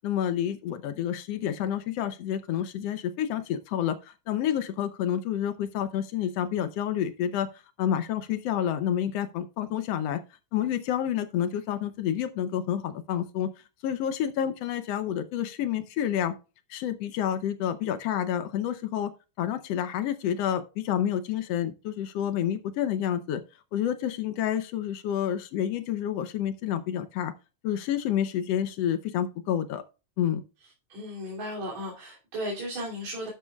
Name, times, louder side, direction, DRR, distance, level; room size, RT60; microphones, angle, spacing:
voice 1, 0.0-7.5 7.8-10.2 10.5-13.5 13.8-16.3 16.7-19.1 19.4-23.4 23.7-27.3 27.6-29.8 30.2-30.4, left 10 dB, 70° left, 1.6 m, -29 dB
voice 2, 30.9-33.3, equal, 70° right, 4.1 m, -35 dB
11.5 x 8.5 x 2.3 m
omnidirectional pair, 3.3 m